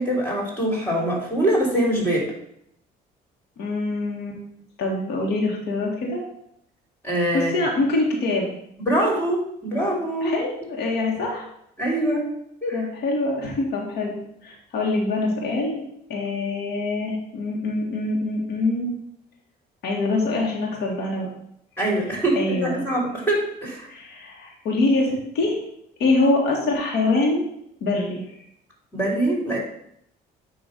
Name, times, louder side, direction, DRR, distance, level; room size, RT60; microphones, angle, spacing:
voice 1, 0.0-2.3 7.0-7.7 8.8-10.3 11.8-12.3 12.6-12.9 21.8-23.9 28.9-29.6, right 1 dB, 10° left, -1 dB, 2.9 m, -23 dB
voice 2, 3.6-4.4 4.8-6.2 7.3-8.5 10.2-11.4 12.7-14.2 14.4-15.8 16.1-18.9 19.8-21.3 22.4-22.8 23.9-25.6 26.0-27.4 27.8-28.2, left 2 dB, 75° left, -1 dB, 1.7 m, -24 dB
9.0 x 3.0 x 5.3 m, 0.74 s
cardioid pair, 110°, 17 cm